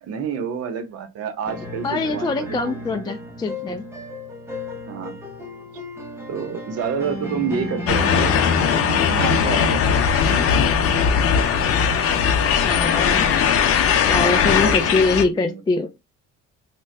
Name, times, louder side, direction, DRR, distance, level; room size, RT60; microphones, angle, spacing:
voice 1, 0.0-3.1 4.9-5.2 6.3-8.4 8.8-10.4 14.3-14.9 15.2-15.6, right 7 dB, 55° right, 0.9 m, -29 dB
sound 1, 1.5-9.0, left 1 dB, 10° right, 0.9 m, -33 dB
voice 2, 1.8-3.8 12.6-13.3 14.1-15.9, left 3 dB, 15° left, 0.3 m, -23 dB
sound 2, 7.9-15.2, left 7 dB, 50° left, 0.7 m, -19 dB
3.6 x 2.3 x 3.2 m
cardioid pair, 120°, 30 cm